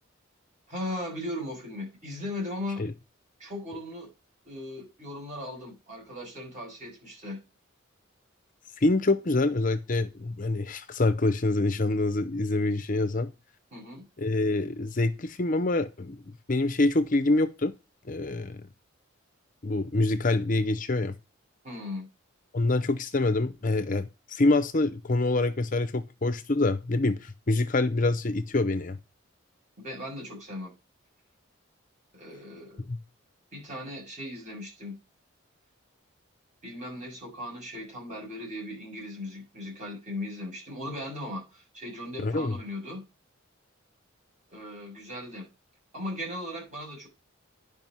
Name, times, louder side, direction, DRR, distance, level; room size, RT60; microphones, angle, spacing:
voice 1, 0.7-2.8 3.4-4.1 4.4-7.4 13.7-14.1 21.6-22.1 29.8-30.7 32.1-32.8 33.5-35.0 36.6-43.0 44.5-45.5 45.9-47.1, left 1 dB, 35° right, 7.3 m, -38 dB
voice 2, 8.8-13.3 14.2-17.7 18.1-18.7 19.6-21.1 22.5-29.0 32.9-33.0 42.2-42.5, left 2 dB, 40° left, 0.7 m, -26 dB
11.0 x 5.3 x 5.5 m
head